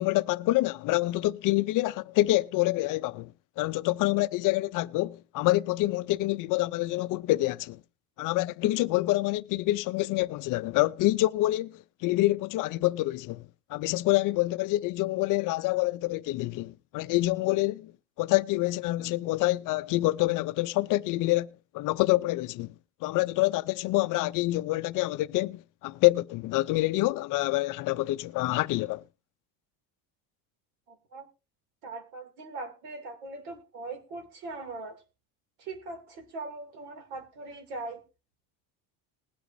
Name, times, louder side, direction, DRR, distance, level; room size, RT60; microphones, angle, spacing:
voice 1, 0.0-3.3 3.6-7.8 8.2-17.9 18.2-21.5 21.7-22.7 23.0-29.0, left 18 dB, 50° left, 0.4 m, -27 dB
voice 2, 30.9-31.3 31.8-35.0 35.6-38.0, right 3 dB, 90° right, 2.6 m, -40 dB
20.5 x 8.1 x 2.6 m
cardioid pair, 135°, 43 cm